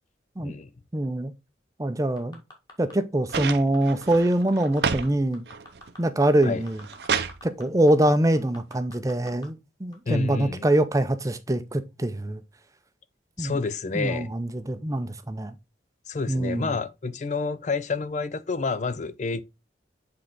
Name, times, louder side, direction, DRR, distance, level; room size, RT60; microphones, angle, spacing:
voice 1, 0.4-0.7 6.4-6.6 10.1-10.7 13.4-14.3 16.1-19.4, left 4 dB, 40° left, 0.5 m, -29 dB
voice 2, 0.9-1.3 1.8-2.4 2.8-5.4 6.0-6.8 7.4-12.4 13.4-13.6 13.9-15.5 16.3-16.7, right 1 dB, 20° right, 0.5 m, -24 dB
sound 1, 2.2-2.9 3.3-4.2 4.5-5.1 5.3-7.6 7.9-8.0 8.3-9.5 9.9-10.0, left 2 dB, 25° left, 1.9 m, -46 dB
sound 2, 3.3-5.1 5.5-6.0 6.5-7.4 8.6-8.7, right 6 dB, 60° right, 0.6 m, -29 dB
8.0 x 3.8 x 3.7 m
head